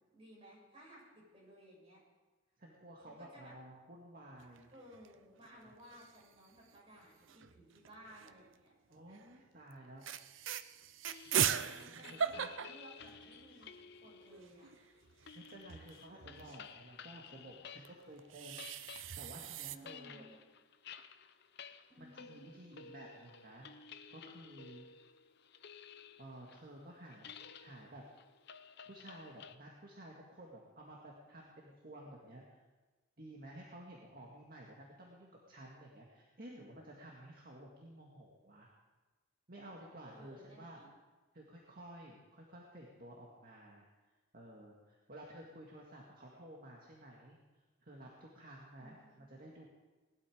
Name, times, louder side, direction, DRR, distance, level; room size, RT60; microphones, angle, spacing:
voice 1, 0.1-2.0 3.0-3.6 4.7-8.7 11.3-14.7 19.7-20.3 21.9-22.4 40.1-40.9 48.8-49.2, equal, 30° right, -4 dB, 6.6 m, -58 dB
voice 2, 2.6-4.7 5.5-5.7 8.9-10.1 11.2-12.5 15.3-20.3 22.0-24.9 26.2-27.3 27.6-28.0 28.9-32.6 33.2-38.7 39.5-40.8 41.3-43.9 44.3-49.7, right 1 dB, 50° right, -2 dB, 2.0 m, -53 dB
sound 1, 4.4-5.1 5.4-5.5 5.7-6.3 7.3-8.5 9.1-9.3 9.7-9.8 10.0-13.7 14.0-14.1 14.3-16.6 17.8-19.8, right 8 dB, 80° right, 0.6 m, -39 dB
sound 2, 11.1-18.1 18.4-29.5, left 6 dB, 55° left, 0.7 m, -54 dB
19.5 x 12.0 x 5.1 m, 1.3 s
head